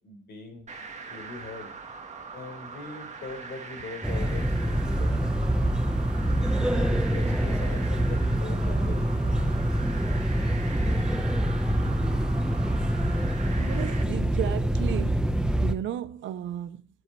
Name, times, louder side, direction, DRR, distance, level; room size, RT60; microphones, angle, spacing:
voice 1, 0.0-0.7 1.1-1.7 2.3-5.4 6.7-9.8, left 4 dB, 60° left, 4.5 m, -41 dB
sound 1, 0.7-14.0, right 4 dB, 35° right, 1.9 m, -42 dB
sound 2, 4.0-15.7, right 1 dB, 5° right, 1.1 m, -25 dB
voice 2, 13.5-15.3 15.6-16.8, right 11 dB, 70° right, 0.7 m, -34 dB
16.0 x 8.1 x 3.2 m
cardioid pair, 90°, 20 cm